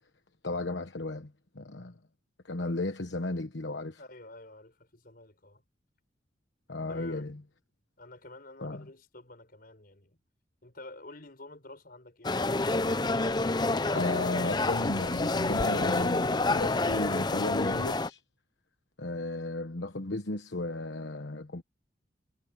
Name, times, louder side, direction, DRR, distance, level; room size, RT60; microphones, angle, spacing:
voice 1, 0.4-1.9 2.4-4.0 6.7-7.4 8.6-8.9 13.9-18.2 19.0-21.6, left 2 dB, 75° left, 1.2 m, -34 dB
voice 2, 4.0-5.6 6.9-7.3 8.0-10.2 10.6-12.7, left 2 dB, 55° left, 5.0 m, -50 dB
sound 1, 12.2-18.1, left 2 dB, 25° left, 0.7 m, -28 dB
head